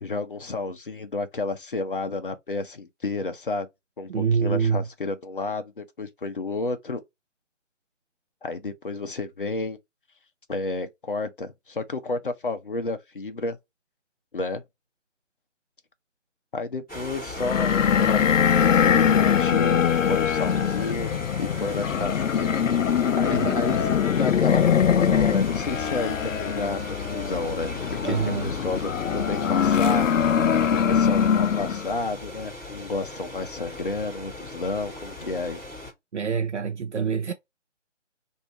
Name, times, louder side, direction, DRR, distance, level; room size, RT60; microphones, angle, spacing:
voice 1, 0.0-3.7 4.0-7.0 8.4-9.8 10.5-13.6 14.3-14.6 16.5-17.7 18.1-19.8 20.1-21.1 21.4-22.5 23.2-30.2 30.7-35.6, left 3 dB, 45° left, 0.7 m, -31 dB
voice 2, 4.1-4.9 23.3-23.9 28.0-28.5 36.1-37.3, right 6 dB, 65° right, 0.6 m, -26 dB
sound 1, 16.9-35.9, left 2 dB, ahead, 1.2 m, -38 dB
sound 2, 17.4-31.9, left 8 dB, 85° left, 0.5 m, -22 dB
3.1 x 2.7 x 4.1 m
figure-of-eight pair, 165°, 37 cm